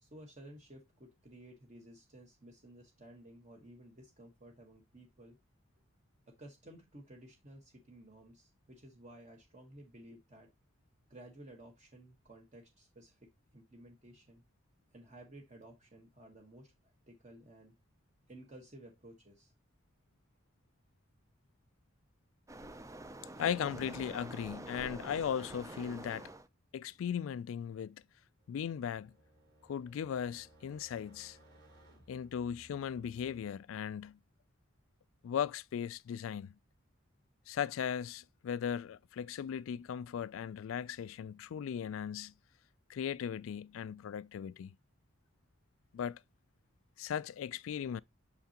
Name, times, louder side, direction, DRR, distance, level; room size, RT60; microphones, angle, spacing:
voice 1, 0.0-5.4 6.3-10.5 11.1-14.4 14.9-17.7 18.3-19.5, right 1 dB, 35° right, 1.3 m, -55 dB
Waves surf, 22.5-26.5, right 2 dB, 15° right, 0.5 m, -47 dB
voice 2, 23.4-26.3 26.7-28.0 28.5-29.1 29.7-31.4 32.1-34.2 35.2-36.5 37.5-42.3 42.9-44.7 45.9-46.2 47.0-48.0, left 8 dB, 75° left, 0.3 m, -37 dB
sound 1, 28.4-33.5, right 1 dB, 60° right, 3.3 m, -62 dB
6.6 x 5.8 x 2.9 m
head